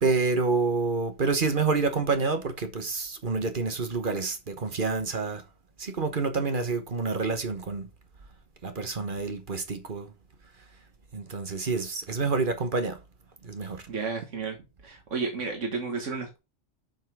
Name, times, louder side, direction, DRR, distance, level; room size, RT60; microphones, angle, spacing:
voice 1, 0.0-5.4 5.8-7.9 8.6-10.1 11.1-13.0 13.4-13.9, right 4 dB, 45° right, 1.3 m, -28 dB
voice 2, 13.9-14.6 14.8-16.4, right 4 dB, 85° right, 1.7 m, -32 dB
7.3 x 5.7 x 4.6 m
omnidirectional pair, 1.2 m